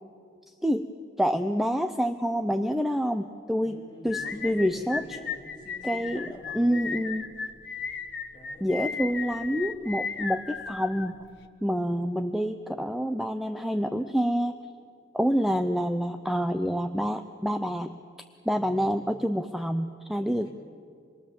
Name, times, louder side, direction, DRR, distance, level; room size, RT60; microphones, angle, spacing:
voice 1, 1.2-5.0 5.8-6.3 6.5-7.2 8.6-11.2 11.6-14.6 15.1-18.0 18.4-20.5, equal, ahead, 7 dB, 0.6 m, -27 dB
voice 2, 3.6-7.0 8.3-8.7 18.5-19.0 20.2-20.5, left 1 dB, 25° left, -4 dB, 7.1 m, -46 dB
sound 1, 4.1-11.5, left 5 dB, 65° left, 1.4 m, -36 dB
26.5 x 21.5 x 7.3 m, 2.2 s
head